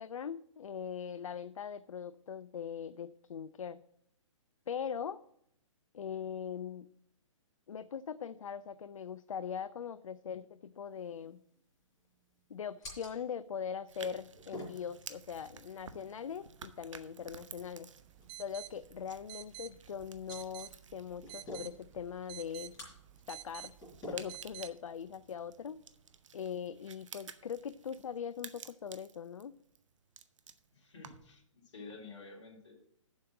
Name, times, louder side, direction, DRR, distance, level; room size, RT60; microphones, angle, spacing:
voice 1, 0.0-3.8 4.7-5.2 5.9-6.9 7.7-11.4 12.5-17.9 18.4-22.8 23.3-23.7 24.1-25.8 26.3-29.6, left 7 dB, 75° left, 14 dB, 0.4 m, -41 dB
sound 1, 10.9-26.2, equal, 20° left, 4.2 m, -54 dB
sound 2, 13.9-31.4, right 6 dB, 65° right, 0.8 m, -54 dB
sound 3, 18.0-24.7, right 15 dB, 20° right, 0.4 m, -51 dB
voice 2, 30.7-32.7, left 3 dB, 60° left, -1 dB, 3.1 m, -50 dB
7.3 x 6.0 x 7.3 m, 0.72 s
figure-of-eight pair, 130°, 17 cm